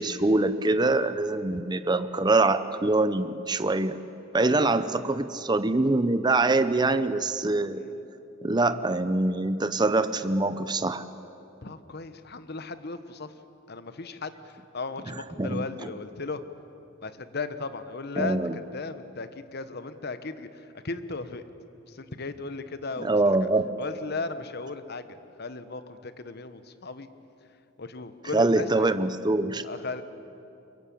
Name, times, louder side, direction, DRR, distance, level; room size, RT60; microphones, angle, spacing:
voice 1, 0.0-4.0 4.3-7.8 8.4-11.0 15.4-15.9 18.2-18.6 23.0-23.7 28.3-29.6, right 2 dB, 20° right, 12 dB, 0.8 m, -24 dB
voice 2, 4.4-4.9 7.8-8.0 11.6-13.3 13.7-16.4 17.0-20.5 20.8-21.4 21.9-23.1 23.8-25.1 25.4-27.1 27.8-28.9 29.6-30.0, left 3 dB, 55° left, 11 dB, 1.2 m, -36 dB
23.0 x 22.5 x 8.6 m, 2.8 s
head